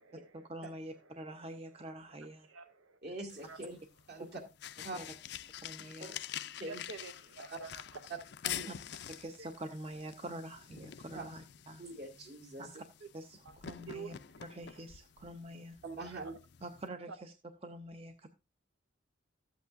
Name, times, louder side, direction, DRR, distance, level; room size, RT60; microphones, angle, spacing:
voice 1, 0.3-2.5 4.2-4.3 4.9-5.1 5.6-6.2 8.7-8.8 9.1-11.8 12.6-12.8 13.1-14.1 14.4-15.8 16.6-17.3 17.6-18.3, right 1 dB, 30° right, 7 dB, 0.6 m, -46 dB
voice 2, 2.4-3.0 3.5-3.6 6.7-7.8 8.5-8.6 9.4-9.5 13.4-13.5 13.9-14.1 16.1-16.3 17.1-17.2, right 5 dB, 85° right, 9 dB, 0.8 m, -47 dB
voice 3, 3.0-3.8 4.1-4.4 4.8-5.0 6.0-6.1 6.6-6.8 7.5-7.6 8.4-8.7 11.1-11.2 11.8-12.7 15.8-16.3, right 2 dB, 50° right, 0 dB, 2.4 m, -43 dB
sound 1, 3.3-16.9, left 10 dB, 55° left, 0.4 m, -47 dB
13.5 x 8.1 x 2.5 m, 0.27 s
head